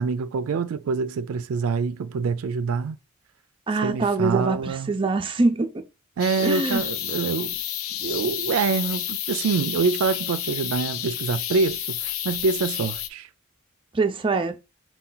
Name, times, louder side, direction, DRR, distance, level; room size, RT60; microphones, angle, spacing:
voice 1, 0.0-3.0 3.8-4.9 6.2-7.6 8.0-13.3, right 5 dB, 85° right, 0.4 m, -25 dB
voice 2, 3.7-5.8 6.4-6.8 13.9-14.6, right 3 dB, 25° right, 0.5 m, -24 dB
sound 1, 6.2-13.1, left 11 dB, 80° left, 0.4 m, -30 dB
5.6 x 2.3 x 3.9 m
head